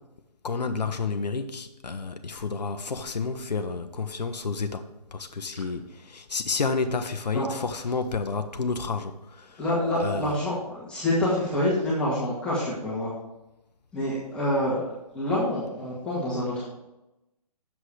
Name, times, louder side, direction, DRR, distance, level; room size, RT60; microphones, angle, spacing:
voice 1, 0.4-9.6 10.0-10.3, left 4 dB, 85° left, 0.9 m, -30 dB
voice 2, 9.6-13.1 13.9-14.8 15.1-16.6, left 1 dB, 5° left, 1.9 m, -27 dB
8.0 x 7.4 x 4.9 m
hypercardioid pair, 155°, 21 cm